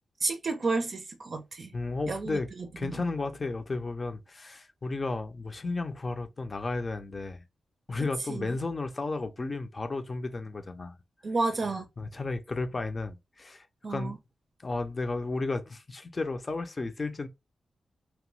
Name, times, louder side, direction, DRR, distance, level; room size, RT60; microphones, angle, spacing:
voice 1, 0.2-1.7 2.1-3.0 8.3-8.5 11.2-11.9 13.8-14.2, right 3 dB, 55° right, 0.5 m, -31 dB
voice 2, 1.7-2.5 2.8-7.4 7.9-11.0 12.0-14.2 14.6-17.3, left 3 dB, 35° left, 0.6 m, -33 dB
2.9 x 2.2 x 3.1 m
cardioid pair, 80°, 0 cm